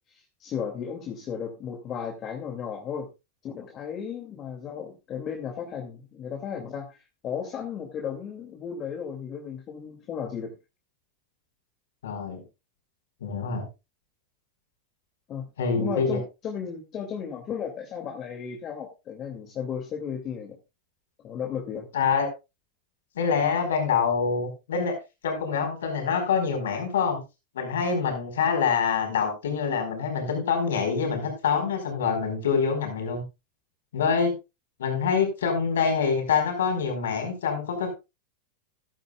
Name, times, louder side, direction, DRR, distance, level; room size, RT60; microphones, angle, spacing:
voice 1, 0.1-3.1 3.4-7.0 7.2-10.5 15.3-15.5 15.8-20.6 21.2-21.9, left 7 dB, 40° left, 2 dB, 2.4 m, -34 dB
voice 2, 12.0-12.4 13.2-13.7 15.6-16.2 21.9-22.3 23.1-25.0 25.2-27.2 27.5-33.2 33.9-34.4 34.8-37.9, left 6 dB, 80° left, 4 dB, 4.6 m, -25 dB
14.5 x 12.0 x 2.3 m, 0.26 s
hypercardioid pair, 100°, 0 cm